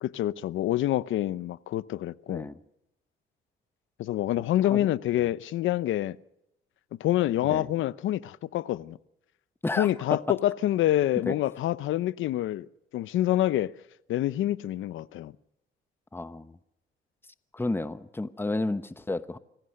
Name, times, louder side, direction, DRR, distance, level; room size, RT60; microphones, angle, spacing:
voice 1, 0.0-2.5 4.0-6.2 7.0-9.0 9.8-12.7 12.9-13.7 14.1-15.3, left 13 dB, 80° left, 0.8 m, -27 dB
voice 2, 2.3-2.6 4.7-4.9 7.4-7.7 9.6-10.2 11.3-11.4 16.1-16.6 17.5-19.4, left 2 dB, 10° left, 1.0 m, -32 dB
26.0 x 17.0 x 6.5 m
cardioid pair, 90°, 20 cm